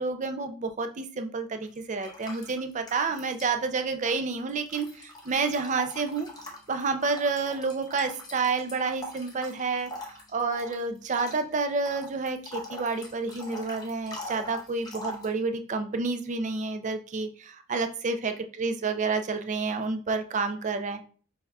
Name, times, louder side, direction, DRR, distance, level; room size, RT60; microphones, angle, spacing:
voice 1, 0.0-6.3 6.7-21.0, right 4 dB, 35° right, 8 dB, 0.4 m, -29 dB
sound 1, 1.6-3.5 3.8-15.3, left 1 dB, 20° left, 0.8 m, -43 dB
5.4 x 3.4 x 2.3 m, 0.41 s
head